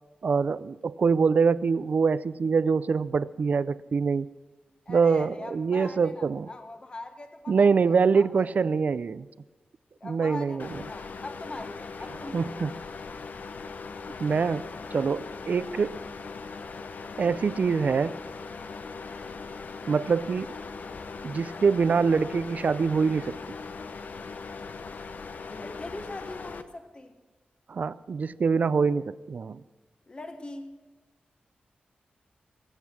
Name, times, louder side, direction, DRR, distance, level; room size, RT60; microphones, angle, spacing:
voice 1, 0.2-4.3 4.9-6.5 7.5-9.3 10.0-10.7 12.3-12.7 14.2-16.0 17.2-18.2 19.9-20.5 21.2-23.4 27.7-29.6, right 5 dB, 55° right, 16 dB, 0.5 m, -24 dB
voice 2, 4.9-8.5 8.8-8.9 10.0-12.8 25.5-27.2 30.1-30.7, left 2 dB, 35° left, 5 dB, 1.3 m, -42 dB
sound 1, 10.6-26.6, left 4 dB, 65° left, 0.8 m, -40 dB
23.0 x 8.3 x 5.9 m, 1.3 s
wide cardioid pair, 125°, 3 cm